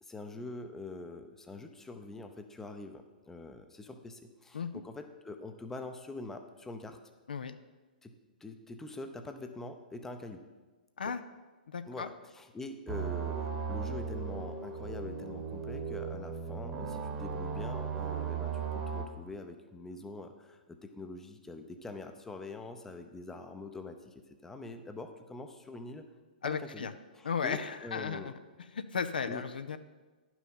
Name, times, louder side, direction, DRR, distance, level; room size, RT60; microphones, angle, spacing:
voice 1, 0.0-7.0 8.0-8.1 8.4-10.4 11.0-11.1 11.9-24.1 24.4-26.0 26.4-28.3 29.3-29.4, left 2 dB, 5° left, 6 dB, 0.7 m, -44 dB
voice 2, 11.7-12.1 26.4-26.9 27.2-28.3 28.7-29.8, left 6 dB, 65° left, 11 dB, 0.5 m, -35 dB
sound 1, 12.9-19.1, right 6 dB, 25° right, 1.2 m, -36 dB
10.5 x 5.9 x 5.6 m, 1.3 s
figure-of-eight pair, 115°, 5 cm